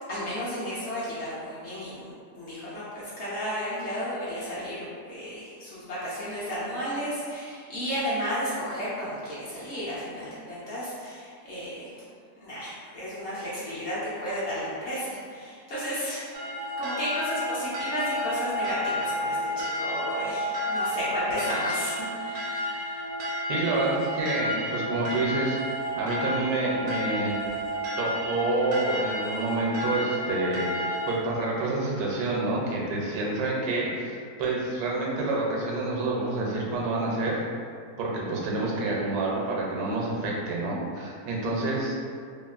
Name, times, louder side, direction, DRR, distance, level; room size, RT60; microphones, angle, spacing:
voice 1, 0.1-11.9 12.4-16.4 16.8-23.1, equal, 60° left, -10 dB, 0.8 m, -33 dB
sound 1, 16.3-31.2, equal, 60° right, 0.6 m, -31 dB
voice 2, 23.5-25.6 25.9-27.4 28.0-30.7 31.1-37.4 38.0-42.0, right 2 dB, 85° right, -3 dB, 1.1 m, -28 dB
2.8 x 2.4 x 2.4 m, 2.2 s
omnidirectional pair, 1.6 m